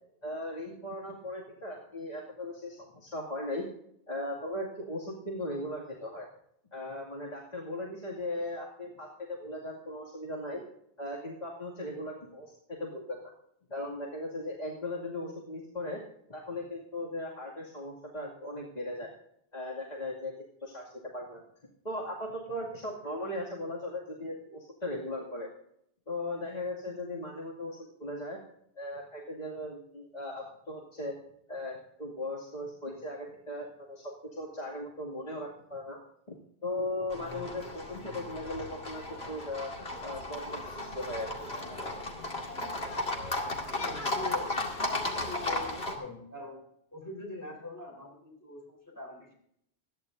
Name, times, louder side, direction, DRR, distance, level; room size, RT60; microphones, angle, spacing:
voice 1, 0.2-3.6 4.1-6.3 6.7-10.6 11.0-13.3 13.7-16.0 16.3-19.1 19.5-20.3 20.6-21.4 21.8-25.5 26.1-28.4 28.8-31.1 31.5-36.0 36.3-36.4 36.6-39.7 40.0-41.5 43.8-43.9, left 1 dB, 40° left, -4 dB, 2.5 m, -38 dB
Livestock farm animals working animals, 37.1-46.0, left 2 dB, 75° left, 2.4 m, -35 dB
voice 2, 43.8-46.6 46.9-49.3, left 2 dB, 15° left, -1 dB, 3.9 m, -43 dB
25.5 x 10.5 x 2.6 m, 0.72 s
omnidirectional pair, 1.1 m